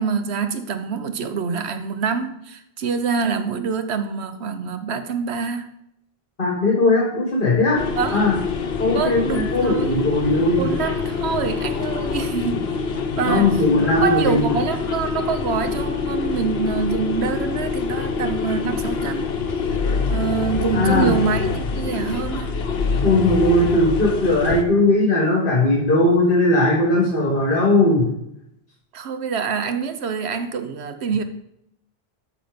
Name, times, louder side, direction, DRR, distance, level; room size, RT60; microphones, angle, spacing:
voice 1, 0.0-5.7 8.0-8.2 8.9-10.0 10.6-19.3 20.1-22.5 28.9-31.2, right 6 dB, 90° right, 1.1 m, -26 dB
voice 2, 6.4-7.8 8.1-8.4 8.8-10.9 12.5-12.6 13.3-14.6 20.7-21.1 23.0-28.1, left 2 dB, 55° left, 1.8 m, -18 dB
sound 1, 7.8-24.6, left 5 dB, 70° left, 1.1 m, -25 dB
8.4 x 6.1 x 5.1 m
omnidirectional pair, 1.1 m